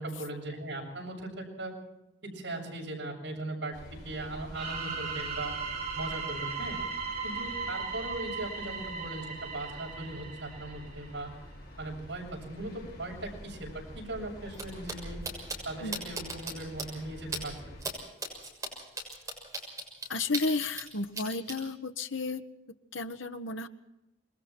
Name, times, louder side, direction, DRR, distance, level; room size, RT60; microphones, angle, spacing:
voice 1, 0.0-1.8 2.2-5.5 6.0-6.8 7.2-11.3 11.8-15.2 15.6-17.8, right 2 dB, 70° right, -1 dB, 7.2 m, -39 dB
sound 1, 3.7-17.8, equal, 50° left, 6.4 m, -48 dB
sound 2, 4.5-11.2, right 4 dB, 45° right, 4.0 m, -37 dB
sound 3, 14.5-14.6 14.9-15.0 15.2-15.6 15.9-16.5 16.8-16.9 17.3-17.4 17.8-17.9 18.2-20.9 21.1-21.6, right 2 dB, 15° right, 6.6 m, -36 dB
voice 2, 20.1-22.4 22.9-23.7, left 3 dB, 85° left, 8 dB, 1.4 m, -32 dB
27.0 x 21.5 x 4.5 m, 0.89 s
head